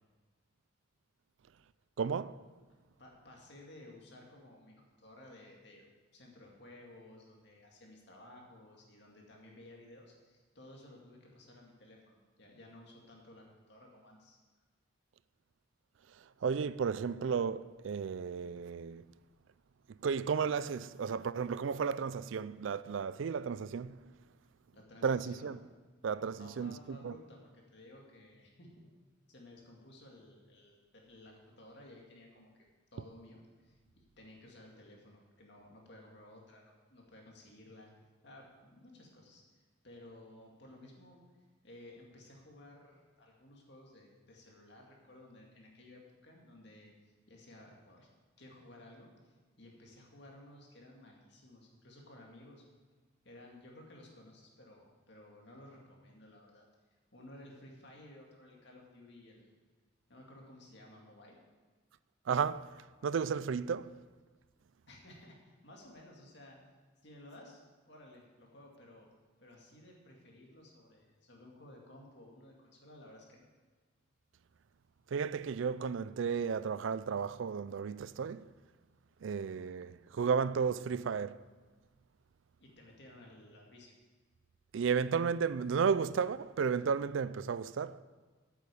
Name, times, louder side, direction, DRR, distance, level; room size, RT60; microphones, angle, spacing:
voice 1, 2.0-2.4 16.4-19.0 20.0-24.0 25.0-25.6 26.0-26.7 27.0-27.1 62.3-62.7 63.0-63.9 75.1-78.5 79.2-81.4 84.7-88.0, right 6 dB, 75° right, 0.4 m, -33 dB
voice 2, 2.7-5.9 6.1-14.4 24.7-25.6 26.4-28.9 29.3-37.9 38.2-41.2 41.6-48.1 48.4-52.6 53.2-56.7 57.1-59.6 60.1-61.4 64.9-66.6 67.0-67.6 67.9-69.1 69.4-73.5 82.6-83.9, left 1 dB, 60° left, 2.3 m, -56 dB
8.6 x 8.3 x 6.9 m
head